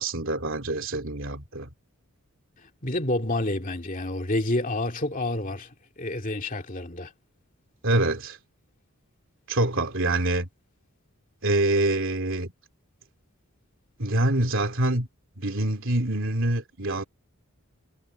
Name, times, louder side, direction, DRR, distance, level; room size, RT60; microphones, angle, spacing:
voice 1, 0.0-1.7 7.8-8.4 9.5-10.5 11.4-12.5 14.0-15.1 15.4-17.0, right 1 dB, 60° right, 3.2 m, -25 dB
voice 2, 2.8-5.7 6.0-7.1, left 1 dB, 35° left, 2.4 m, -28 dB
head